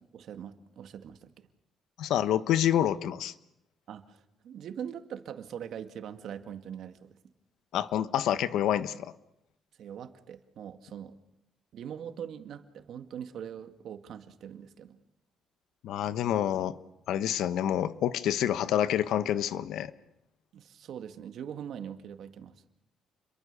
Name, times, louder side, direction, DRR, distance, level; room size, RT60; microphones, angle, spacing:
voice 1, 0.1-1.5 3.9-7.2 9.8-11.2 11.7-15.0 20.5-22.5, right 8 dB, 70° right, 8 dB, 2.0 m, -42 dB
voice 2, 2.0-3.3 7.7-9.1 15.8-16.8 17.1-19.9, left 11 dB, 80° left, 14 dB, 1.1 m, -27 dB
29.5 x 23.0 x 6.9 m, 0.84 s
cardioid pair, 90°, 0 cm